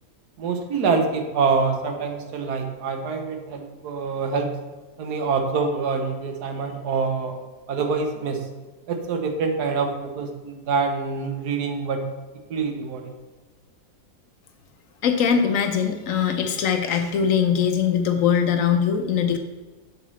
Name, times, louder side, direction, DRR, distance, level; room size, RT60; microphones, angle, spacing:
voice 1, 0.4-4.5 5.0-7.3 7.7-8.5 8.9-12.0 12.5-13.1, right 4 dB, 80° right, 4 dB, 1.5 m, -25 dB
voice 2, 15.0-19.4, left 7 dB, 65° left, 6 dB, 0.9 m, -21 dB
7.4 x 6.5 x 3.1 m, 1.3 s
omnidirectional pair, 1.7 m